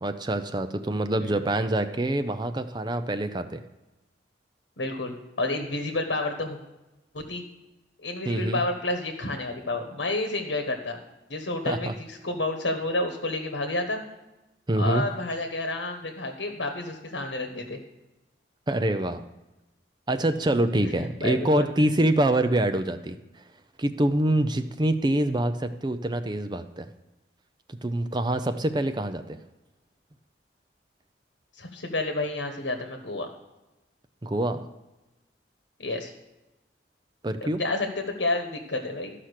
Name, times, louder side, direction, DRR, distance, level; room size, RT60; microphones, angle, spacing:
voice 1, 0.0-3.6 8.3-8.6 11.7-11.9 14.7-15.0 18.7-19.3 20.1-23.2 23.8-26.9 27.7-29.4 34.2-34.7 37.2-37.6, right 1 dB, 25° right, 9 dB, 0.5 m, -25 dB
voice 2, 4.8-6.6 7.1-7.4 8.0-11.0 11.3-14.0 14.8-17.8 20.8-21.6 31.5-33.3 35.8-36.1 37.4-39.1, left 2 dB, 85° left, 4 dB, 1.3 m, -30 dB
13.5 x 5.9 x 6.5 m, 1.0 s
head